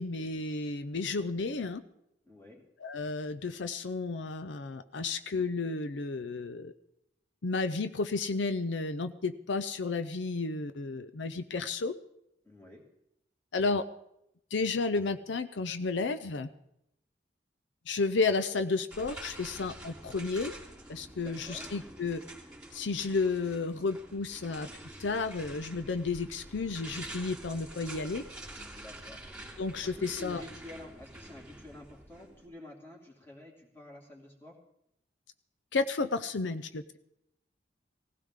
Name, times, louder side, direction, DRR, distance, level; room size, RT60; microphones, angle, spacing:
voice 1, 0.0-1.8 2.8-6.7 7.4-11.9 13.5-13.8 14.5-16.5 17.9-20.5 20.9-22.2 22.7-24.7 25.0-28.2 29.6-30.4 35.7-37.0, left 3 dB, 80° left, 10 dB, 0.6 m, -32 dB
voice 2, 2.2-2.6 12.4-12.8 21.2-21.7 28.7-29.2 29.8-34.6, left 1 dB, 10° left, -1 dB, 2.6 m, -49 dB
sound 1, 18.9-32.5, right 1 dB, 5° right, 3.1 m, -47 dB
18.5 x 16.0 x 3.7 m, 0.79 s
head